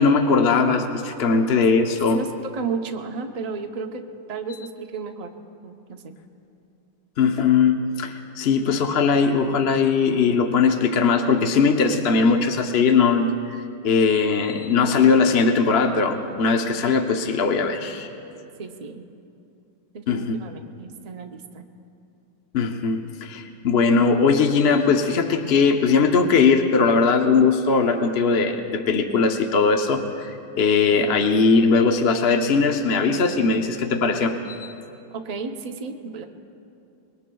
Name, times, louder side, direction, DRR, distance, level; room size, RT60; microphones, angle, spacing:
voice 1, 0.0-2.2 7.2-13.5 13.8-18.1 20.1-20.3 22.5-34.7, left 5 dB, 50° left, 4 dB, 0.7 m, -20 dB
voice 2, 2.5-4.0 4.3-5.3 5.6-6.2 18.6-19.0 19.9-21.6 35.1-36.2, right 5 dB, 85° right, 4 dB, 0.3 m, -33 dB
25.5 x 22.0 x 2.3 m, 2.7 s
omnidirectional pair, 2.0 m